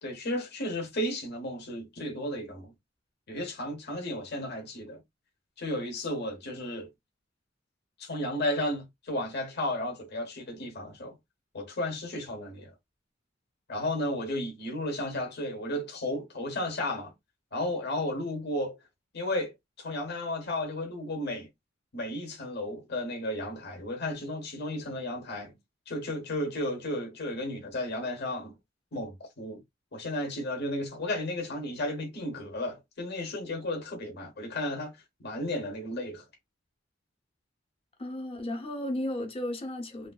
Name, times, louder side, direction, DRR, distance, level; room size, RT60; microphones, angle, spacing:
voice 1, 0.0-2.7 3.3-5.0 5.6-6.9 8.0-11.2 11.5-12.7 13.7-17.1 17.5-18.8 19.1-21.5 21.9-25.5 25.9-28.5 28.9-29.6 29.9-35.0 35.2-36.2, left 1 dB, 60° left, 0.9 m, -33 dB
voice 2, 38.0-40.1, left 1 dB, 30° left, 0.8 m, -34 dB
3.2 x 2.4 x 2.3 m
head